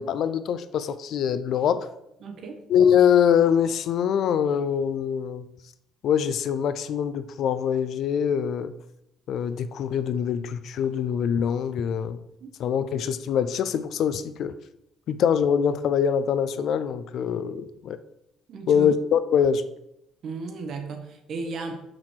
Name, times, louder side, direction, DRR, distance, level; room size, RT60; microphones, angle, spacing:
voice 1, 0.0-1.9 2.7-5.4 6.0-8.7 9.3-12.2 12.6-14.5 15.1-18.0 18.7-19.7, left 8 dB, 55° left, 13 dB, 0.4 m, -23 dB
voice 2, 2.2-2.6 12.4-12.5 18.5-18.9 20.2-21.8, right 4 dB, 50° right, 5 dB, 1.2 m, -35 dB
6.5 x 5.9 x 4.5 m, 0.81 s
cardioid pair, 160°, 0 cm